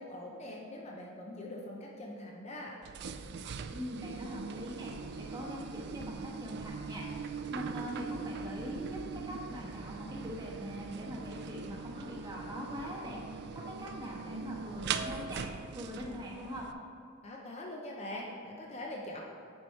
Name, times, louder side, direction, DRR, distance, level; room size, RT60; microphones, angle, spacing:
voice 1, 0.0-2.8 17.2-19.2, left 1 dB, 30° left, -1 dB, 0.7 m, -43 dB
sound 1, 2.8-16.7, right 5 dB, 50° right, 0.3 m, -41 dB
voice 2, 3.7-7.2 7.5-16.7, equal, 20° right, -4 dB, 1.3 m, -42 dB
9.7 x 4.9 x 4.5 m, 2.4 s
head